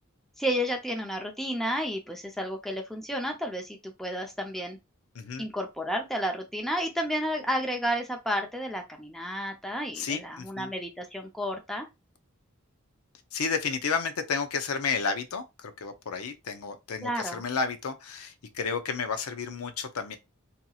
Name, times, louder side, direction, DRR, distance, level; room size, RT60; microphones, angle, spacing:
voice 1, 0.4-4.8 5.4-11.9 17.0-17.4, equal, ahead, 0.5 m, -31 dB
voice 2, 5.1-5.5 9.9-10.7 13.3-20.2, left 5 dB, 85° left, 0.5 m, -32 dB
2.8 x 2.7 x 2.3 m
head